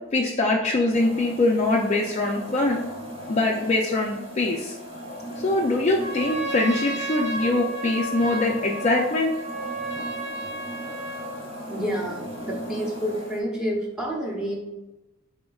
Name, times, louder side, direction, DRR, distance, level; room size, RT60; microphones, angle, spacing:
voice 1, 0.1-2.8 3.3-4.8 5.3-9.3 10.0-10.1, left 2 dB, 30° left, -1 dB, 0.3 m, -23 dB
sound 1, 0.9-13.4, equal, 30° right, 0.9 m, -38 dB
Trumpet, 5.9-11.4, right 2 dB, 60° right, 1.2 m, -33 dB
voice 2, 11.7-14.6, equal, 5° right, -2 dB, 0.7 m, -29 dB
5.0 x 4.2 x 2.3 m, 1.0 s
head